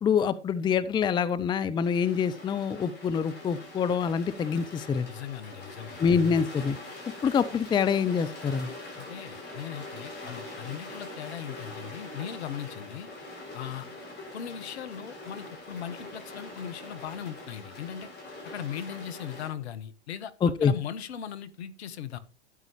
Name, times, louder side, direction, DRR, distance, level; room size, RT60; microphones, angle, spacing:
voice 1, 0.0-5.1 6.0-6.8 7.2-8.7 20.4-20.7, left 6 dB, 15° left, 14 dB, 0.6 m, -26 dB
sound 1, 1.8-19.5, left 2 dB, 30° left, 7.1 m, -43 dB
voice 2, 5.1-6.0 9.0-13.1 13.5-13.9 14.3-18.1 18.4-20.3 20.6-22.2, left 9 dB, 65° left, 15 dB, 1.4 m, -39 dB
13.0 x 9.5 x 3.1 m, 0.31 s
hypercardioid pair, 100°, 35 cm